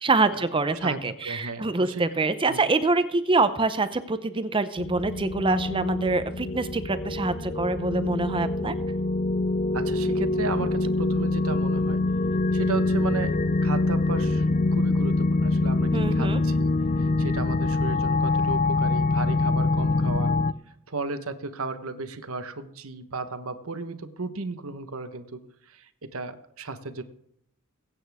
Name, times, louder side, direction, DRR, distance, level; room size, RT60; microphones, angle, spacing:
voice 1, 0.0-8.7 15.9-16.4, right 3 dB, 25° right, 11 dB, 0.6 m, -25 dB
voice 2, 0.8-2.0 2.5-2.6 9.7-12.0 12.5-14.4 14.7-20.3 20.9-25.4 25.7-27.0, right 3 dB, 70° right, 10 dB, 1.1 m, -34 dB
sound 1, 4.8-20.5, left 2 dB, 35° left, 0.4 m, -25 dB
22.0 x 8.9 x 3.5 m, 0.72 s
head